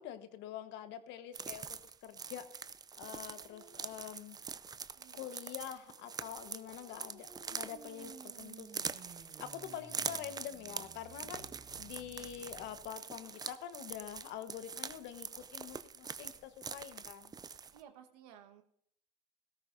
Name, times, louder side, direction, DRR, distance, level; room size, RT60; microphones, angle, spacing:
voice 1, 0.0-2.5 3.0-4.4 5.1-17.3, left 10 dB, 60° left, 10 dB, 1.3 m, -46 dB
sound 1, 1.3-17.8, right 6 dB, 20° right, 0.5 m, -44 dB
voice 2, 3.2-4.3 4.9-5.2 17.7-18.6, right 9 dB, 80° right, 5 dB, 1.4 m, -58 dB
sound 2, 5.8-12.9, right 5 dB, 50° right, 1.9 m, -56 dB
17.5 x 13.5 x 2.7 m, 0.69 s
supercardioid pair, 95°, 20 cm